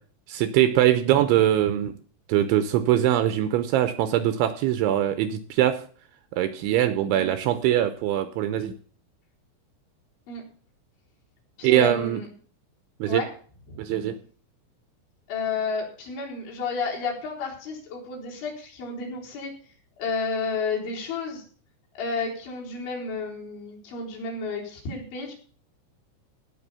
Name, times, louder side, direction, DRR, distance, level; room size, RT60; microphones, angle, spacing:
voice 1, 0.3-1.9 2.3-5.8 6.3-8.7 11.6-12.2 13.0-13.2 13.8-14.2, right 12 dB, 80° right, 11 dB, 2.9 m, -22 dB
voice 2, 11.6-12.3 13.0-13.3 13.7-13.9 15.3-19.5 20.0-21.4 22.0-25.3, left 4 dB, 60° left, -2 dB, 6.3 m, -31 dB
17.5 x 5.9 x 7.1 m, 0.43 s
omnidirectional pair, 6.0 m